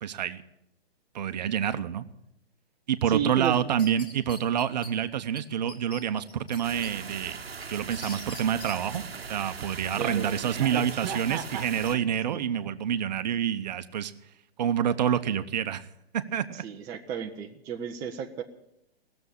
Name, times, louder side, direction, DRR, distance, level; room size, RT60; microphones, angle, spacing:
voice 1, 0.0-0.4 1.1-2.0 2.9-7.4 7.7-9.0 9.3-14.1 14.6-15.9 16.1-16.6, right 9 dB, 45° right, 12 dB, 0.8 m, -27 dB
voice 2, 3.1-3.6 9.9-11.7 12.1-12.4 16.5-18.4, right 8 dB, 10° right, 3 dB, 0.5 m, -34 dB
sound 1, 3.4-4.9 5.4-5.5 5.7-6.9 7.3-8.8, left 2 dB, 15° left, 1.6 m, -44 dB
sound 2, 6.6-12.0, right 5 dB, 75° right, 0.9 m, -40 dB
17.0 x 7.0 x 9.8 m, 0.82 s
figure-of-eight pair, 120°, 31 cm